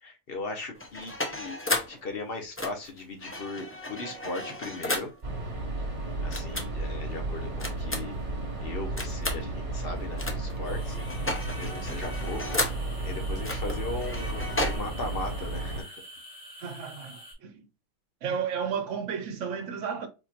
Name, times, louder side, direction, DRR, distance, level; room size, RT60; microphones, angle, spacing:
voice 1, 0.0-1.6 1.9-5.1 6.2-8.2 8.6-11.0 11.6-16.0, left 2 dB, 50° left, 1.0 m, -38 dB
sound 1, 0.8-2.0 2.6-5.2 6.3-6.7 7.6-8.3 9.0-9.4 10.2-10.6 10.8-12.9 13.4-14.8, left 1 dB, 20° left, 0.4 m, -33 dB
sound 2, 5.2-15.8, right 2 dB, 45° right, 1.6 m, -33 dB
sound 3, 10.6-17.3, equal, 80° left, 2.4 m, -47 dB
voice 2, 16.6-17.6 18.2-20.1, right 7 dB, 75° right, 1.0 m, -33 dB
4.4 x 2.8 x 2.4 m
omnidirectional pair, 1.3 m